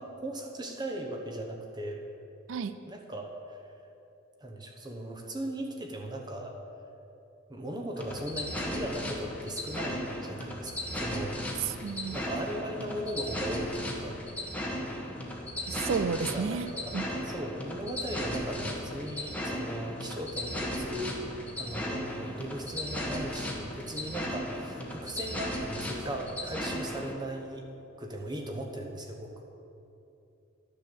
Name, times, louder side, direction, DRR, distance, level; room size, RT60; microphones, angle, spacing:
voice 1, 0.0-2.0 2.9-3.6 4.4-6.6 7.5-11.8 12.1-14.2 16.3-21.2 21.5-27.7 28.0-29.4, right 1 dB, 20° right, 1 dB, 1.0 m, -38 dB
sound 1, 8.0-27.1, left 1 dB, 5° left, 1.1 m, -36 dB
voice 2, 11.6-12.2 15.7-17.1, right 6 dB, 65° right, 12 dB, 0.4 m, -32 dB
11.5 x 6.8 x 7.0 m, 2.8 s
head